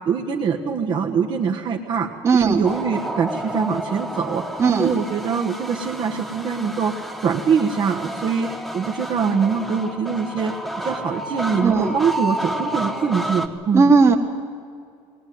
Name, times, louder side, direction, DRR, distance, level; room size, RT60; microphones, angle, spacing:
voice 1, 0.0-4.4 4.8-6.9 7.2-10.5 10.8-13.9, right 6 dB, 40° right, 1 dB, 1.5 m, -23 dB
voice 2, 2.2-2.7 4.6-4.9 11.6-12.0 13.7-14.2, right 4 dB, 25° right, 3 dB, 1.8 m, -16 dB
sound 1, 2.6-13.5, right 1 dB, ahead, 1.2 m, -30 dB
20.0 x 19.5 x 9.4 m, 2.2 s
cardioid pair, 150°, 11 cm